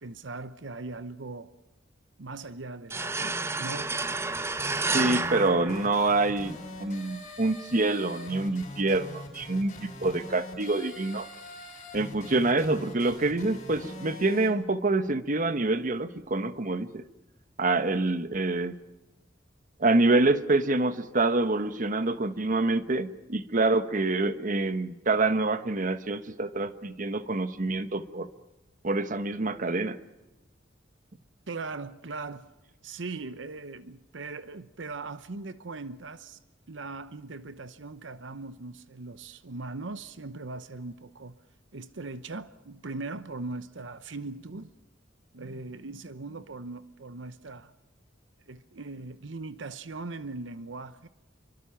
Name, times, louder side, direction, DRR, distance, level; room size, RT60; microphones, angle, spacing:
voice 1, 0.0-1.5 2.2-4.0 31.5-32.5 32.8-36.4 36.7-41.4 41.7-44.7 45.3-47.7 48.5-51.1, right 3 dB, 75° right, 0.9 m, -39 dB
sound 1, 2.9-6.5, right 3 dB, 15° right, 0.7 m, -31 dB
sound 2, 4.4-14.5, left 1 dB, 40° left, 7.5 m, -43 dB
voice 2, 4.9-11.3 11.9-17.0 17.6-18.7 19.8-28.3 28.8-30.0, right 2 dB, 45° right, 1.1 m, -26 dB
27.5 x 24.0 x 5.8 m
head